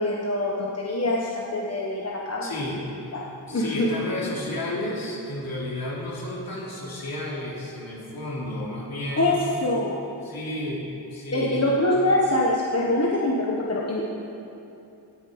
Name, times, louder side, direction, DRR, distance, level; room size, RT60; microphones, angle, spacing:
voice 1, 0.0-2.6 3.5-3.9 9.2-9.3 9.6-10.0 11.3-14.1, left 1 dB, 35° left, -4 dB, 1.3 m, -24 dB
voice 2, 2.4-2.8 3.5-9.4 10.2-10.8 11.1-11.7, left 1 dB, 55° left, -4 dB, 3.3 m, -32 dB
17.5 x 10.0 x 5.2 m, 2.8 s
wide cardioid pair, 120°, 43 cm